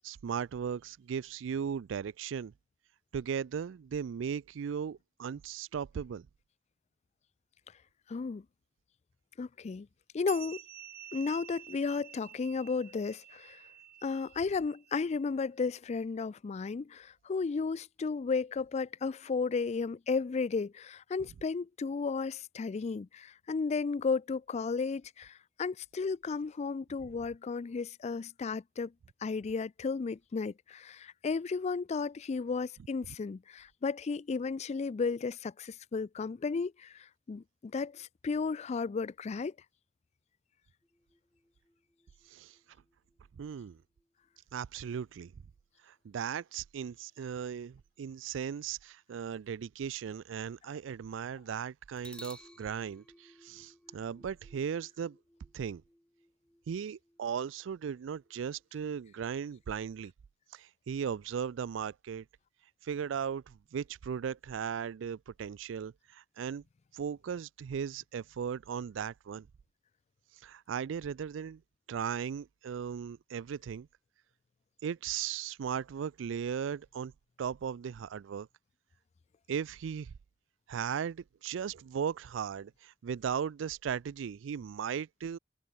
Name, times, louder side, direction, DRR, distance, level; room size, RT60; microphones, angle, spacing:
voice 1, 0.0-2.5 3.1-6.3 42.3-42.6 43.4-43.8 44.5-45.3 45.8-55.2 55.5-55.8 56.7-60.1 60.5-62.3 62.8-66.6 66.9-69.5 70.4-71.6 71.9-73.9 74.8-77.1 77.4-78.5 79.5-80.1 80.7-85.4, right 7 dB, 85° right, 0.4 m, -37 dB
voice 2, 8.1-8.4 9.4-9.9 10.1-10.6 11.1-13.6 14.0-28.9 29.2-39.5, left 4 dB, 35° left, 0.4 m, -34 dB
sound 1, 10.3-15.1, right 11 dB, 55° right, 3.7 m, -50 dB
sound 2, 40.8-44.4 52.0-59.8, left 1 dB, 5° left, 2.8 m, -58 dB
head